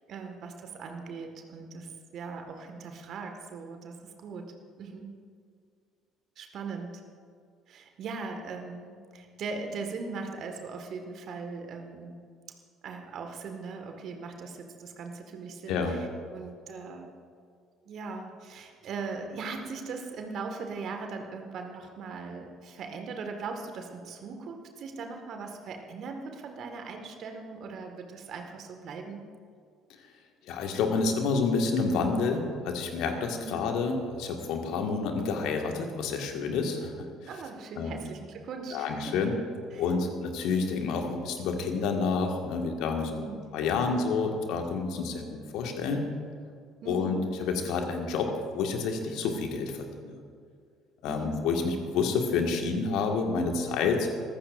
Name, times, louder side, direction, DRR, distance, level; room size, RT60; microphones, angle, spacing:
voice 1, 0.1-5.1 6.4-7.0 7.7-12.2 12.8-16.1 16.3-17.2 17.9-29.2 33.4-33.7 37.3-39.2 39.7-39.8 40.7-40.9 43.1-43.4 46.8-47.2 51.0-51.4, right 4 dB, 50° right, 4 dB, 1.8 m, -39 dB
voice 2, 30.5-37.3 37.8-38.0 38.7-39.3 39.7-46.1 46.9-50.2 51.0-54.1, left 4 dB, 60° left, 3 dB, 1.9 m, -29 dB
24.5 x 15.0 x 2.6 m, 2.2 s
figure-of-eight pair, 55°, 0 cm